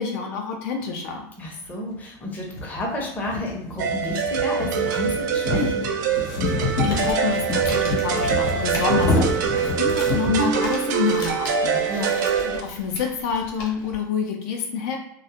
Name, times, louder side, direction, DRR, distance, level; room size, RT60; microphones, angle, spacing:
voice 1, 0.0-1.3 6.5-15.0, left 6 dB, 65° left, 2 dB, 0.5 m, -28 dB
voice 2, 1.4-5.8 11.9-12.2, left 1 dB, 15° left, -1 dB, 0.6 m, -30 dB
sound 1, 1.7-1.8 2.5-10.5, left 2 dB, 90° left, 0.9 m, -27 dB
sound 2, 3.8-12.6, right 6 dB, 85° right, 0.4 m, -24 dB
Crumpling crinkling, 6.6-14.0, left 1 dB, 40° left, 0.9 m, -39 dB
2.2 x 2.0 x 2.8 m, 0.78 s
supercardioid pair, 150°, 10 cm